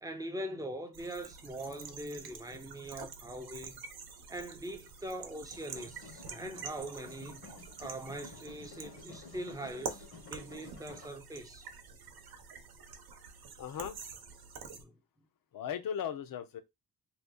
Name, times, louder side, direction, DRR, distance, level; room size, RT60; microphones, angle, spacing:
voice 1, 0.0-3.8 4.3-7.4 7.8-11.6 14.7-15.0, right 1 dB, 10° right, 0.6 m, -42 dB
sound 1, 0.9-14.8, right 5 dB, 65° right, 0.8 m, -47 dB
sound 2, 5.5-11.1, left 4 dB, 75° left, 1.1 m, -52 dB
voice 2, 13.6-14.0 15.5-16.6, left 8 dB, 60° left, 0.6 m, -37 dB
2.8 x 2.3 x 3.6 m
cardioid pair, 115°, 40 cm